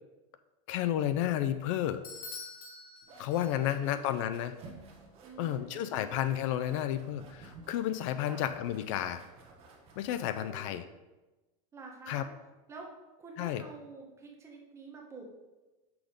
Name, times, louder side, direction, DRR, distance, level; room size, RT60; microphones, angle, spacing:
voice 1, 0.7-2.0 3.2-4.6 5.4-9.2 10.0-10.9 12.1-12.2 13.4-13.6, left 11 dB, 60° left, 11 dB, 0.4 m, -31 dB
Bell / Doorbell, 2.0-3.9, left 3 dB, 75° left, 1.4 m, -46 dB
sound 1, 3.0-10.8, right 3 dB, 30° right, 1.2 m, -54 dB
voice 2, 3.5-4.2 5.2-6.2 8.2-8.4 10.3-10.9 11.7-12.3 12.7-12.9 13.2-15.2, right 4 dB, 15° right, 0 dB, 1.0 m, -49 dB
6.0 x 5.1 x 5.0 m, 1.1 s
supercardioid pair, 165°, 19 cm